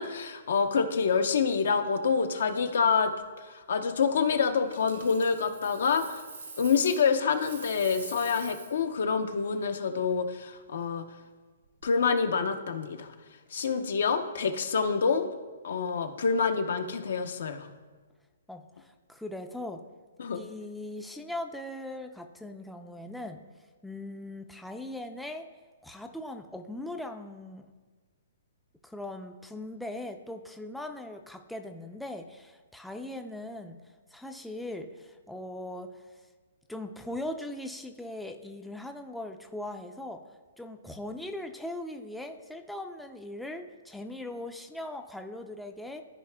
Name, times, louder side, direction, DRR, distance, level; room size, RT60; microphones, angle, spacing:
voice 1, 0.0-3.1 3.4-6.2 6.6-11.0 11.8-13.1 13.5-15.3 15.6-17.7 20.2-20.4, left 5 dB, 70° left, 8 dB, 0.7 m, -27 dB
Coin (dropping), 4.7-7.1 7.3-8.8 11.6-11.8, right 4 dB, 85° right, 2.0 m, -45 dB
voice 2, 18.5-19.8 20.3-23.4 23.8-25.5 25.8-27.7 28.8-33.8 34.1-36.0 36.7-40.2 40.6-46.0, left 1 dB, ahead, 5 dB, 0.4 m, -40 dB
13.5 x 4.8 x 2.2 m, 1.4 s
hypercardioid pair, 145°, 0 cm